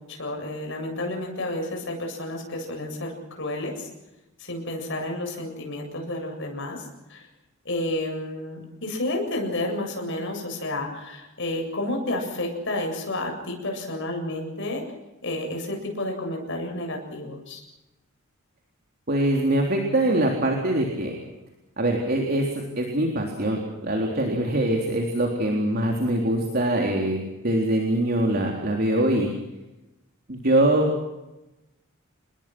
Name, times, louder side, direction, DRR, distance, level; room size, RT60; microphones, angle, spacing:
voice 1, 0.1-3.9 4.4-6.8 7.1-7.3 7.6-14.8 15.2-17.6, left 1 dB, 60° left, 2 dB, 7.7 m, -31 dB
voice 2, 19.1-21.1 21.8-22.5 22.8-27.2 27.4-29.3 30.3-30.9, right 1 dB, 45° right, 1 dB, 3.7 m, -23 dB
28.5 x 21.0 x 6.3 m, 0.99 s
head